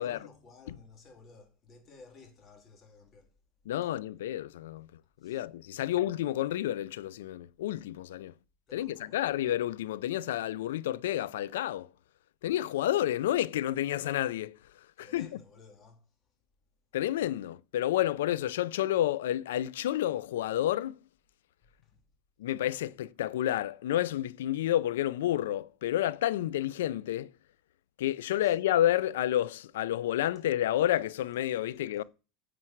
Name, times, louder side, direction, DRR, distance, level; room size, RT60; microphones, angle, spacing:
voice 1, 0.0-3.3 3.8-3.9 5.2-5.4 8.7-9.4 15.0-16.3 21.8-22.0 28.4-28.6, left 4 dB, 35° left, 3.5 m, -55 dB
voice 2, 3.7-4.9 5.2-8.3 8.7-11.9 12.4-15.3 16.9-21.0 22.4-27.3 28.0-32.0, left 12 dB, 85° left, 0.5 m, -30 dB
10.0 x 7.6 x 4.6 m
supercardioid pair, 120°, 0 cm